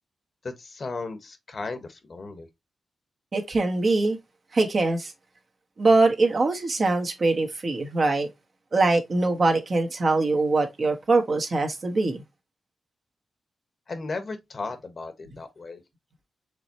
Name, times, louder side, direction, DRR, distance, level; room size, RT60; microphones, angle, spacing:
voice 1, 0.4-2.5 13.9-15.8, left 3 dB, 55° left, 1.1 m, -35 dB
voice 2, 3.3-4.2 4.5-5.1 5.8-8.3 8.7-12.2, right 3 dB, 55° right, 1.3 m, -23 dB
4.9 x 3.1 x 2.9 m
supercardioid pair, 50°, 0 cm